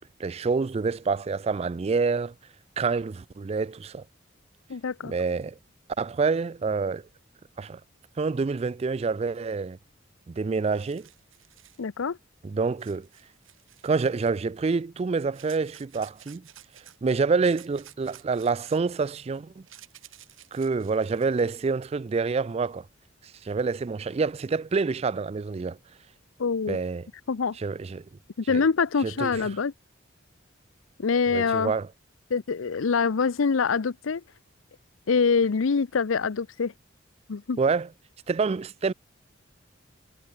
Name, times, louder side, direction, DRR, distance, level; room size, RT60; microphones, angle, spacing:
voice 1, 0.2-2.3 2.8-4.0 5.0-5.6 6.0-7.1 7.6-7.8 8.2-9.8 10.3-11.1 12.4-13.1 13.8-16.5 17.0-19.6 20.5-22.9 23.4-25.8 26.7-27.1 27.6-28.0 28.5-28.6 29.0-29.5 31.3-31.9 37.6-37.9 38.3-38.9, right 4 dB, 30° right, 0.3 m, -27 dB
voice 2, 4.7-5.1 11.8-12.2 26.4-26.8 27.3-27.6 28.4-29.7 31.0-31.7 32.3-34.2 35.1-36.7 37.3-37.6, left 5 dB, 85° left, 0.6 m, -25 dB
sound 1, 10.2-10.3 10.5-11.8 12.8-14.4 15.3-17.0 17.4-21.6, right 11 dB, 85° right, 3.4 m, -53 dB
head